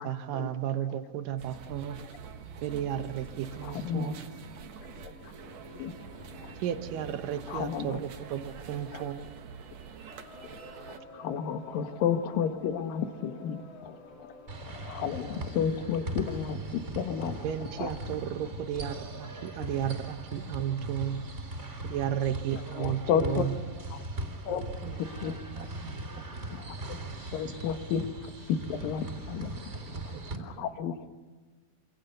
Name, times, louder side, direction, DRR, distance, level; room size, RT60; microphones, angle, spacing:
voice 1, 0.0-2.0 2.6-4.2 6.6-9.3 17.4-21.3 21.8-23.6, right 10 dB, 75° right, 9 dB, 2.8 m, -33 dB
sound 1, 1.4-11.0, right 6 dB, 55° right, 2.4 m, -46 dB
Singing, 2.5-15.7, left 2 dB, 45° left, 4.4 m, -53 dB
voice 2, 3.6-4.1 4.9-5.3 5.7-6.6 7.5-8.0 8.9-9.0 11.1-14.0 14.7-17.4 17.8-17.9 22.5-23.5 23.9-24.0 24.4-24.6 25.0-25.4 26.5-30.1 30.4-31.1, left 7 dB, 75° left, 8 dB, 3.1 m, -32 dB
sound 2, 14.5-30.4, right 2 dB, 20° right, 3.6 m, -39 dB
voice 3, 24.5-26.2 26.5-26.6 30.1-30.6, right 7 dB, 90° right, 3 dB, 4.4 m, -46 dB
27.5 x 26.5 x 6.7 m, 1.3 s
omnidirectional pair, 4.1 m